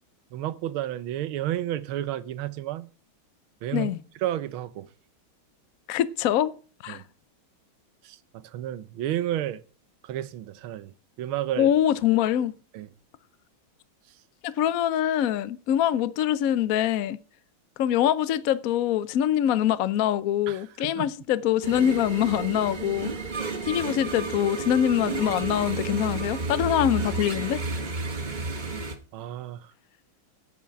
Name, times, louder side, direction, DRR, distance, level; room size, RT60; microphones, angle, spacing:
voice 1, 0.3-2.9 3.6-4.9 6.9-7.0 8.0-9.6 10.0-11.7 12.7-12.9 20.5-21.1 28.4-28.6 29.1-29.7, right 12 dB, 85° right, 1.6 m, -32 dB
voice 2, 5.9-6.6 6.8-7.0 11.6-12.5 14.4-17.2 17.8-23.1 23.6-27.6, left 11 dB, 70° left, 0.8 m, -24 dB
sound 1, 21.6-29.0, right 4 dB, 30° right, 1.1 m, -31 dB
8.5 x 7.1 x 8.5 m
omnidirectional pair, 2.2 m